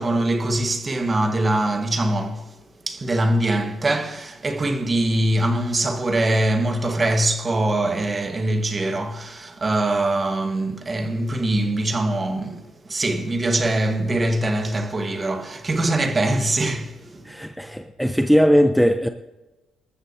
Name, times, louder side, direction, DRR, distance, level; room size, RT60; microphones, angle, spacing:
voice 1, 0.0-2.5 2.9-17.3, right 1 dB, 30° right, 1.5 m, -23 dB
voice 2, 17.2-19.1, equal, ahead, 0.7 m, -19 dB
20.0 x 13.5 x 2.8 m
supercardioid pair, 75°, 0 cm